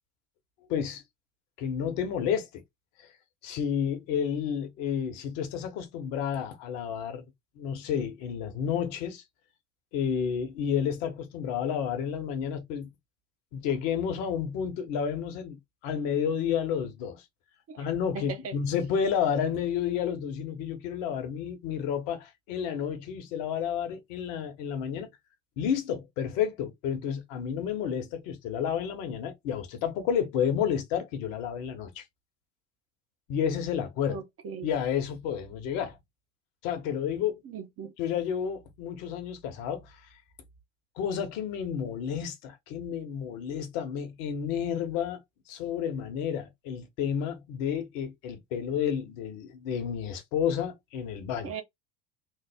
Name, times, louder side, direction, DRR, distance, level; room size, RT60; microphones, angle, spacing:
voice 1, 0.7-1.0 1.6-2.6 3.0-3.1 3.4-7.2 7.6-9.2 9.9-12.9 13.5-17.2 17.8-25.1 25.6-32.0 33.3-34.2 34.6-36.0 36.6-37.6 38.0-39.9 41.0-45.2 45.5-51.5, left 8 dB, 60° left, 1.1 m, -31 dB
voice 2, 18.1-18.5 34.1-34.7 37.4-37.9 51.4-51.6, right 6 dB, 40° right, 0.9 m, -38 dB
3.3 x 2.0 x 3.4 m
hypercardioid pair, 75°, 37 cm